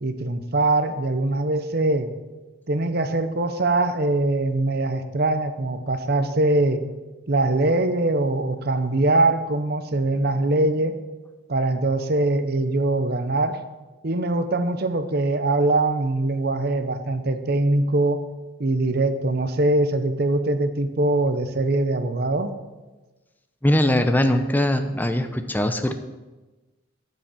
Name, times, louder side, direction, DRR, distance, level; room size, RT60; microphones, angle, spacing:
voice 1, 0.0-2.1 2.7-6.8 7.3-11.0 11.5-13.6 14.0-18.3 18.6-22.5, right 2 dB, 50° right, 10 dB, 0.8 m, -22 dB
voice 2, 23.6-25.9, left 1 dB, 10° left, 8 dB, 0.6 m, -21 dB
9.5 x 7.7 x 7.1 m, 1.2 s
head